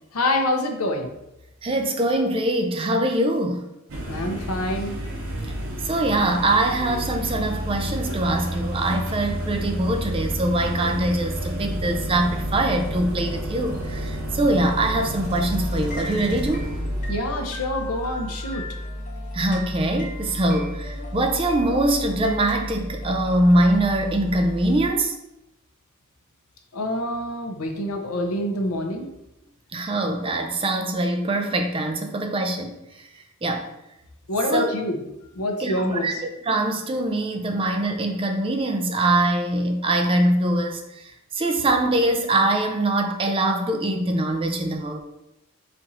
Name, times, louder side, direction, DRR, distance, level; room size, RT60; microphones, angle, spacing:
voice 1, 0.1-1.1 4.1-5.0 17.1-18.6 26.7-29.1 34.3-35.0 35.4-36.2, left 1 dB, 85° left, 3 dB, 0.7 m, -26 dB
voice 2, 1.6-3.7 5.3-5.5 5.8-16.6 19.3-25.2 29.7-32.7 33.4-33.7 34.5-34.8 35.6-41.0 41.3-45.0, right 1 dB, 25° right, 4 dB, 0.4 m, -23 dB
sound 1, 3.9-17.2, equal, 70° right, 0.8 m, -30 dB
sound 2, 14.9-24.9, equal, 35° left, 1.0 m, -34 dB
4.3 x 2.5 x 4.1 m, 0.89 s
head